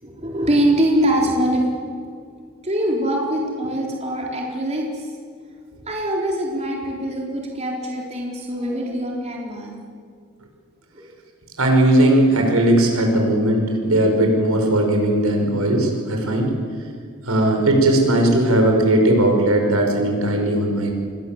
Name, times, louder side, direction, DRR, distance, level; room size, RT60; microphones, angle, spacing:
voice 1, 0.0-1.6 2.6-5.1 5.9-9.7 10.9-11.0, right 1 dB, 30° right, -2 dB, 4.0 m, -23 dB
voice 2, 11.6-16.5 17.2-20.9, right 1 dB, 80° right, 2 dB, 6.3 m, -18 dB
28.0 x 22.5 x 8.0 m, 2.2 s
head